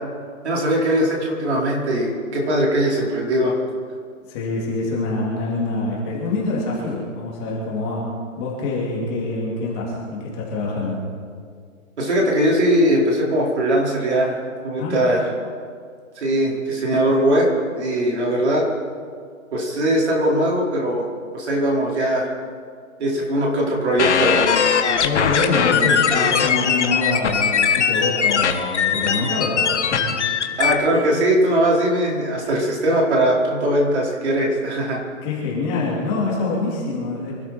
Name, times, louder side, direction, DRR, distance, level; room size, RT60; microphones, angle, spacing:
voice 1, 0.4-3.6 12.0-14.4 14.6-15.3 16.2-17.5 17.7-18.7 19.5-21.1 21.3-22.3 23.0-24.6 30.6-35.0, right 1 dB, 50° right, -2 dB, 4.8 m, -20 dB
voice 2, 4.3-8.1 8.4-11.0 14.8-15.1 25.0-30.2 30.9-31.1 32.4-32.6 35.2-37.3, left 3 dB, 20° left, -4 dB, 2.7 m, -25 dB
sound 1, 24.0-30.7, left 7 dB, 55° left, 1.6 m, -20 dB
25.0 x 13.0 x 4.4 m, 2.1 s
hypercardioid pair, 165°, 42 cm